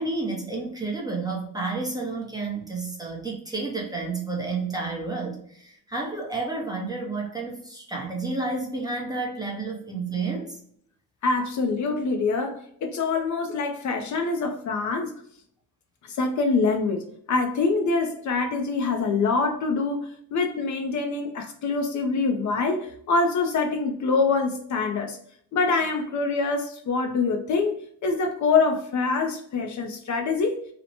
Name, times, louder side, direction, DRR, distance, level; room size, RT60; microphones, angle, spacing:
voice 1, 0.0-10.6, right 3 dB, 10° right, 0.6 m, -30 dB
voice 2, 11.2-15.1 16.2-25.2 25.5-30.6, left 4 dB, 50° left, 0.5 m, -25 dB
2.9 x 2.0 x 2.6 m
cardioid pair, 140°, 37 cm